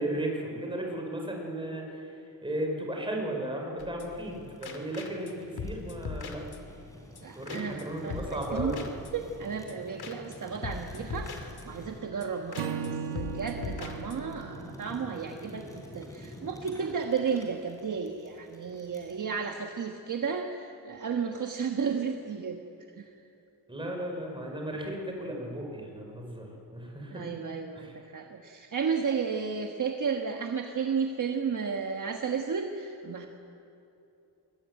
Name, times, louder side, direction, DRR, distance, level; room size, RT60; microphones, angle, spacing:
voice 1, 0.0-6.4 7.3-8.9 23.7-27.3 27.7-28.0, right 1 dB, 10° right, 1 dB, 5.1 m, -35 dB
sound 1, 3.8-4.3 4.6-5.3 5.6-6.9 7.2-7.3 7.5-7.8 8.1-9.4 9.7-9.8 10.0-10.4 10.6-11.9 12.2-12.3 12.5-12.9 13.2-14.4, left 4 dB, 60° left, 2.6 m, -40 dB
Fire, 4.1-19.2, equal, 10° left, 3.9 m, -49 dB
voice 2, 7.2-8.8 9.1-22.6 23.0-23.1 27.1-33.3, right 6 dB, 45° right, 3 dB, 1.4 m, -33 dB
Acoustic guitar / Strum, 12.6-15.9, right 7 dB, 70° right, 1.5 m, -38 dB
23.0 x 22.0 x 9.7 m, 2.8 s
wide cardioid pair, 180°, 42 cm